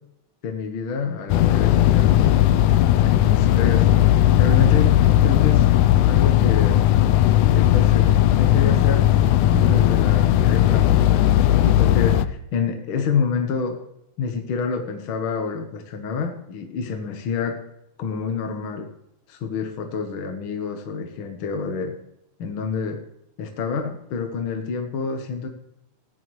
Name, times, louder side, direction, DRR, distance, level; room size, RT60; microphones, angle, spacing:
voice 1, 0.4-2.3 3.0-3.9 4.4-5.8 6.1-6.8 7.5-9.2 9.5-13.8 14.2-17.6 18.0-18.9 19.3-22.0 22.4-23.0 23.4-25.5, left 5 dB, 60° left, 4 dB, 1.5 m, -27 dB
sound 1, 1.3-12.3, left 12 dB, 80° left, 2.0 m, -17 dB
16.0 x 10.0 x 3.1 m, 0.81 s
omnidirectional pair, 3.5 m